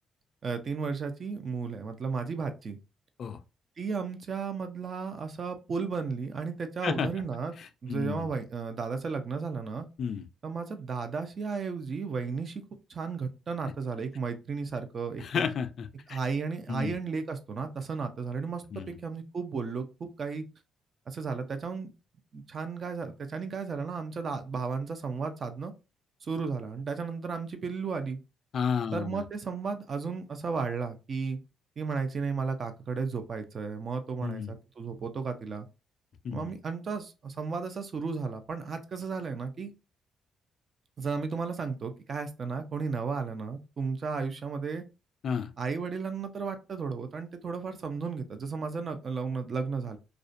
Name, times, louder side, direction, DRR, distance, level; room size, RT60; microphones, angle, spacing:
voice 1, 0.4-2.8 3.8-7.5 7.8-9.9 10.4-12.6 12.9-15.4 16.1-20.4 21.1-21.9 22.3-25.7 26.2-28.2 28.9-31.4 31.8-35.7 36.3-39.7 41.0-44.8 45.6-50.0, right 5 dB, 45° right, 0.5 m, -34 dB
voice 2, 7.6-8.3 10.0-10.3 15.2-16.2 16.7-17.0 18.7-18.9 28.5-29.2 34.2-34.5 36.2-36.5 45.2-45.5, left 6 dB, 60° left, 0.3 m, -32 dB
2.4 x 2.1 x 2.5 m
cardioid pair, 90°, 0 cm